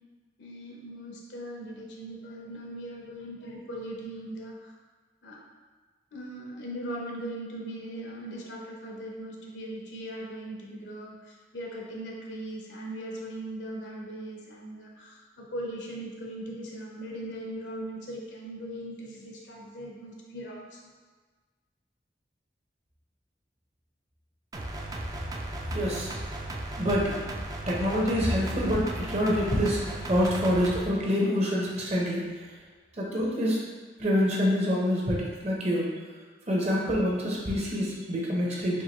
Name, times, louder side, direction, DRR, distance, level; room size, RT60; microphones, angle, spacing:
voice 1, 0.4-4.7 5.2-5.4 6.1-20.8, right 1 dB, 85° left, -2 dB, 0.7 m, -39 dB
sound 1, 24.5-30.9, right 1 dB, 20° right, 0.3 m, -36 dB
voice 2, 25.7-26.1 26.8-27.2 27.7-32.2 33.0-33.6 34.0-35.9 36.5-38.8, equal, 40° right, -3 dB, 0.8 m, -26 dB
4.6 x 2.7 x 3.0 m, 1.4 s
head